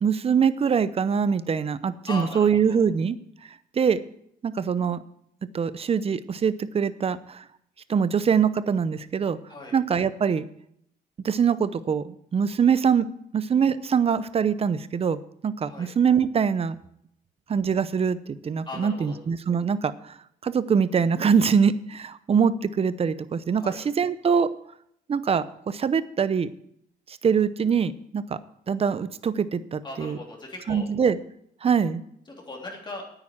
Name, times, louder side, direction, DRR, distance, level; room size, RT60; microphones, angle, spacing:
voice 1, 0.0-3.2 3.7-4.0 4.4-5.0 5.5-7.4 7.9-9.4 9.7-10.5 11.2-16.7 17.5-20.2 20.4-24.5 25.1-26.5 27.1-28.4 28.7-30.2 30.7-31.2 31.6-32.0, right 6 dB, 35° right, 15 dB, 0.7 m, -23 dB
voice 2, 2.1-2.8 9.5-9.7 15.7-15.9 18.6-19.2 23.5-23.8 29.8-30.9 32.3-33.0, left 2 dB, 25° left, -1 dB, 3.1 m, -38 dB
9.5 x 8.9 x 7.3 m, 0.72 s
cardioid pair, 110°, 17 cm